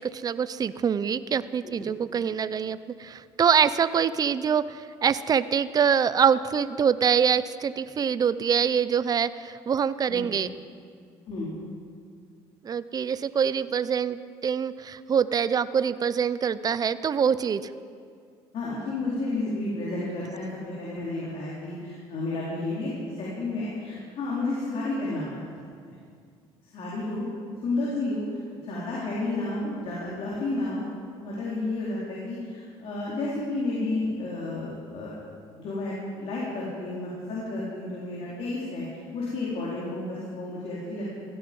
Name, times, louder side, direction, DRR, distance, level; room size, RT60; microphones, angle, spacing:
voice 1, 0.0-10.5 12.6-17.7, right 7 dB, 35° right, 15 dB, 0.6 m, -25 dB
voice 2, 18.5-22.9 23.2-25.4 26.7-27.3 27.6-28.4 28.6-30.8 31.2-35.1 35.5-38.8 39.1-41.2, left 2 dB, 60° left, -6 dB, 4.3 m, -31 dB
16.0 x 15.5 x 5.5 m, 2.2 s
cardioid pair, 95°, 11 cm